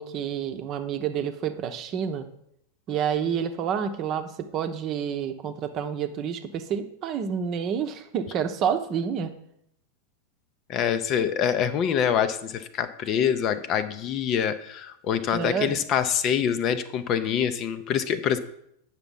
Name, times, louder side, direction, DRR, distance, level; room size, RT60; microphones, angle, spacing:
voice 1, 0.0-2.3 2.9-9.3 15.3-15.8, right 7 dB, 35° right, 7 dB, 0.8 m, -29 dB
voice 2, 10.7-18.4, left 8 dB, 35° left, 11 dB, 0.6 m, -25 dB
9.0 x 6.0 x 5.4 m, 0.73 s
figure-of-eight pair, 90°, 0 cm